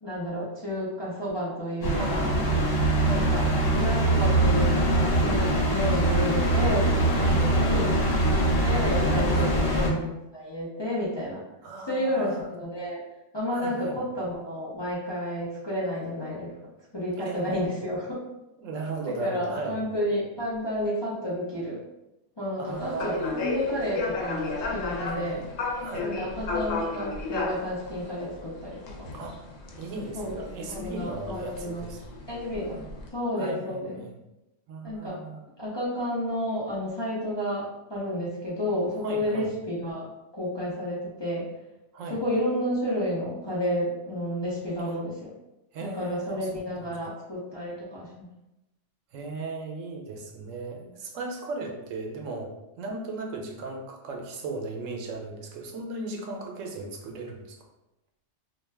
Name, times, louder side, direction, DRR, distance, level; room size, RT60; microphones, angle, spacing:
voice 1, 0.0-2.3 3.1-3.4 3.7-7.0 7.3-7.9 8.2-11.4 11.8-13.0 13.3-16.5 16.9-18.2 19.2-21.8 22.4-25.4 26.0-29.1 30.1-31.9 32.3-32.8 33.1-34.0 34.8-35.2 35.6-41.4 42.1-45.1 45.8-48.3, equal, 30° left, -9 dB, 0.5 m, -31 dB
sound 1, 1.8-9.9, right 1 dB, 55° left, 1.2 m, -23 dB
voice 2, 2.0-3.3 7.2-8.0 9.3-9.6 11.6-12.4 13.5-14.0 17.2-17.9 18.6-19.8 22.6-23.6 25.0-25.5 25.8-26.1 29.1-29.4 29.8-32.3 32.6-33.0 33.4-34.2 34.7-35.4 38.9-39.5 41.9-42.2 44.8-45.0 45.7-46.5 46.7-46.9 49.1-57.6, right 3 dB, 85° right, 2 dB, 1.0 m, -37 dB
sound 2, 22.7-33.1, left 3 dB, 85° left, 0.9 m, -34 dB
2.4 x 2.2 x 3.2 m, 0.93 s
omnidirectional pair, 1.3 m